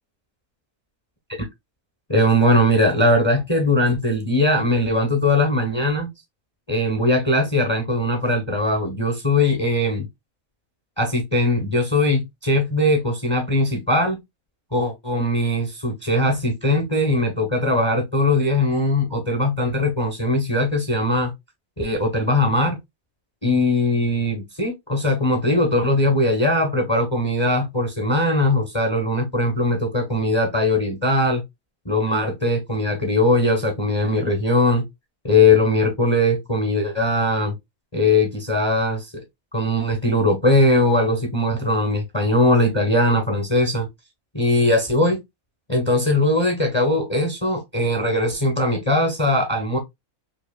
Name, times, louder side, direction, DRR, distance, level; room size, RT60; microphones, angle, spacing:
voice 1, 2.1-6.1 6.7-10.1 11.0-14.2 14.7-21.3 21.8-22.8 23.4-31.4 31.8-34.8 35.2-37.5 37.9-39.1 39.5-43.9 44.3-45.2 45.7-49.8, left 1 dB, 20° left, 0.8 m, -20 dB
5.2 x 2.4 x 2.3 m
omnidirectional pair, 1.6 m